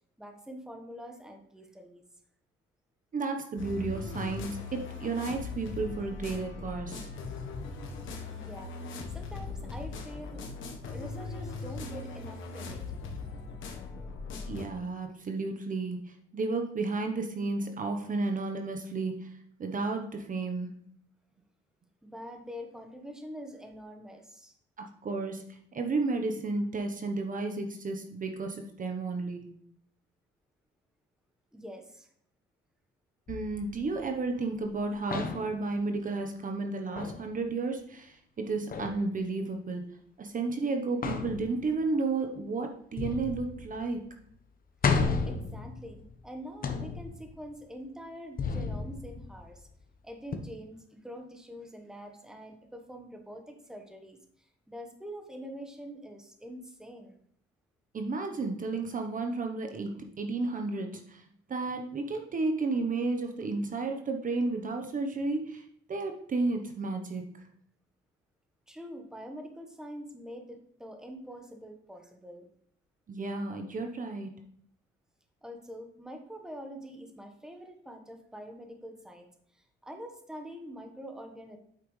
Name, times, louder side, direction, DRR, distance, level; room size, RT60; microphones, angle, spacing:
voice 1, 0.2-2.0 8.3-8.7 9.1-10.5 10.9-12.8 22.0-24.5 31.5-32.1 45.2-49.7 50.0-57.2 68.7-72.5 75.4-81.6, equal, 5° right, 4 dB, 1.3 m, -45 dB
voice 2, 3.1-7.1 14.5-20.8 24.8-29.5 33.3-44.0 57.9-61.2 61.5-67.4 73.1-74.4, right 3 dB, 40° right, 4 dB, 1.0 m, -32 dB
sound 1, 3.6-14.7, left 4 dB, 75° left, 1.2 m, -39 dB
sound 2, 33.3-34.7 35.1-35.7 37.0-37.3 38.7-39.0 41.0-41.9 43.0-44.0 44.3-44.4 44.8-46.2 46.6-47.4 48.4-49.7 50.3-50.4, left 5 dB, 45° left, 1.0 m, -33 dB
8.5 x 5.9 x 3.2 m, 0.66 s
cardioid pair, 90°, 20 cm